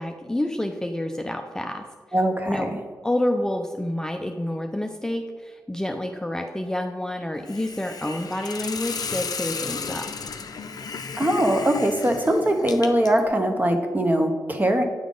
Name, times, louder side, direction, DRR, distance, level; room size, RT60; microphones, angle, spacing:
voice 1, 0.0-1.8 2.5-2.7 3.0-10.1, left 1 dB, 10° left, 4 dB, 0.5 m, -28 dB
voice 2, 2.1-2.7 11.2-14.8, right 1 dB, 25° right, 5 dB, 0.9 m, -21 dB
Hiss, 7.5-13.3, left 5 dB, 65° left, 0.5 m, -34 dB
8.5 x 3.5 x 3.8 m, 1.5 s
cardioid pair, 50°, 7 cm